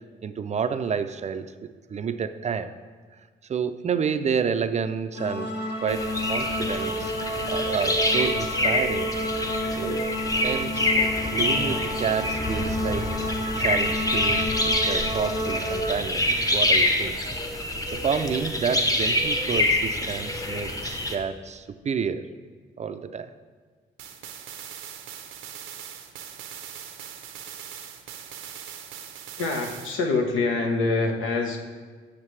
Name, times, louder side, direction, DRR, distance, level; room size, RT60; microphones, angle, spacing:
voice 1, 0.2-2.7 3.4-5.5 5.8-7.1 7.5-9.1 9.8-10.1 10.4-10.9 11.3-13.2 13.5-17.2 17.9-22.3 22.8-23.3, right 6 dB, 35° right, 10 dB, 0.4 m, -29 dB
sound 1, 5.1-15.9, equal, 55° left, 1.2 m, -30 dB
sound 2, 5.9-21.1, left 1 dB, 15° left, 0.8 m, -26 dB
sound 3, 24.0-30.0, right 9 dB, 85° right, 0.7 m, -41 dB
voice 2, 29.4-31.6, left 3 dB, 85° left, 2 dB, 1.0 m, -25 dB
7.2 x 6.6 x 3.2 m, 1.5 s
cardioid pair, 90°, 20 cm